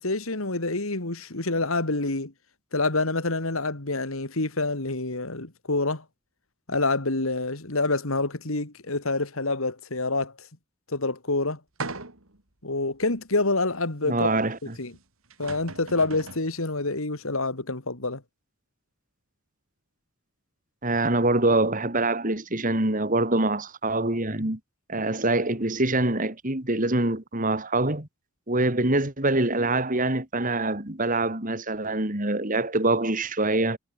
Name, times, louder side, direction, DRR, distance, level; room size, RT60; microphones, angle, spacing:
voice 1, 0.0-2.3 2.7-6.0 6.7-10.3 10.9-11.6 12.6-14.3 14.6-14.9 15.4-18.2, left 2 dB, 75° left, 2.6 m, -27 dB
sound 1, 11.8-12.4 13.0-13.1 14.9-15.0 15.3-16.5, right 3 dB, 75° right, 3.5 m, -37 dB
voice 2, 14.0-14.7 20.8-24.6 24.9-28.1 28.5-33.8, right 2 dB, 40° right, 3.1 m, -25 dB
head